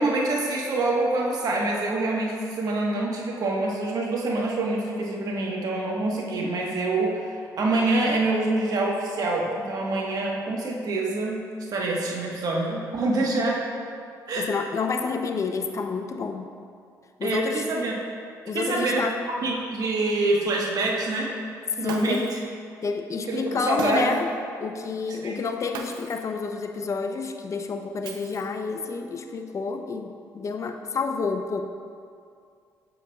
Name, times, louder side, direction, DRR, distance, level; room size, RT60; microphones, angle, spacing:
voice 1, 0.0-13.7 14.3-14.5 17.2-17.9 18.5-19.0 19.4-21.4 21.8-22.2 23.3-24.1 25.2-25.4, right 2 dB, 60° right, -2 dB, 1.2 m, -26 dB
voice 2, 14.4-16.5 17.2-17.6 18.5-19.2 21.8-22.3 22.8-24.3 24.6-31.6, left 4 dB, 45° left, 5 dB, 0.5 m, -29 dB
Shatter, 21.9-22.5 23.8-24.3 25.7-26.3 28.0-28.7, right 5 dB, 80° right, 0.5 m, -38 dB
7.7 x 6.4 x 2.3 m, 2.3 s
supercardioid pair, 70°, 7 cm